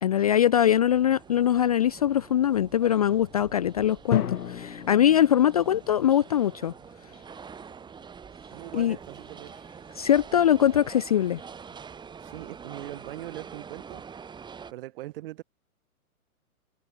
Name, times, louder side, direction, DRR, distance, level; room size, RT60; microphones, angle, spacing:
voice 1, 0.0-6.7 8.7-9.0 10.0-11.4, left 10 dB, 25° left, 0.5 m, -22 dB
sound 1, 0.6-14.7, right 6 dB, 10° right, 4.8 m, -46 dB
Drum, 4.1-6.0, left 9 dB, 90° left, 1.2 m, -33 dB
voice 2, 8.5-9.6 12.2-14.0 14.7-15.4, right 16 dB, 40° right, 1.7 m, -41 dB
hypercardioid pair, 150°, 44 cm